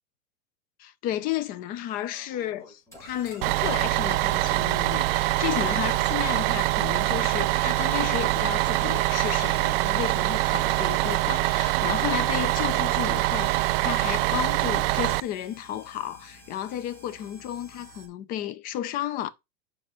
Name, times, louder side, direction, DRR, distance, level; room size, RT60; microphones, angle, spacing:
voice 1, 0.8-19.3, left 12 dB, 25° left, 0.3 m, -33 dB
sound 1, 2.1-18.1, left 1 dB, 5° left, 4.0 m, -50 dB
Bus, 3.4-15.2, right 19 dB, 50° right, 0.4 m, -24 dB
6.3 x 5.7 x 5.0 m
supercardioid pair, 135°, 39 cm